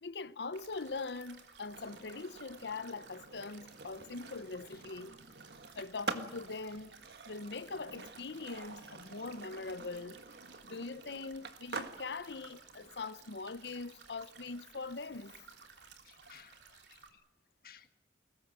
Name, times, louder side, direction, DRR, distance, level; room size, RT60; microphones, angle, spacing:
voice 1, 0.0-5.1 5.8-7.0 7.3-10.2 10.6-15.3, left 3 dB, 75° left, 0.8 m, -42 dB
sound 1, 0.5-17.1, right 5 dB, 85° right, 3.1 m, -57 dB
Skateboard, 0.7-16.6, right 3 dB, 65° right, 1.7 m, -48 dB
voice 2, 16.0-17.2 17.6-17.9, left 7 dB, 55° left, 1.7 m, -58 dB
23.0 x 20.5 x 7.6 m
head